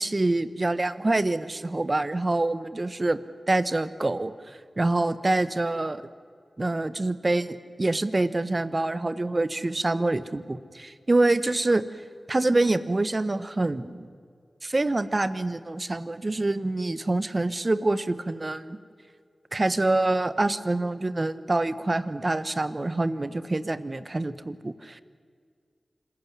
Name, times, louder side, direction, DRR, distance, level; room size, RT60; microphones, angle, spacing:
voice 1, 0.0-3.2 3.5-6.1 6.6-11.8 12.3-14.1 14.6-18.8 19.5-25.0, right 2 dB, 40° right, 14 dB, 1.2 m, -26 dB
26.5 x 15.0 x 9.6 m, 2.1 s
cardioid pair, 40°, 0 cm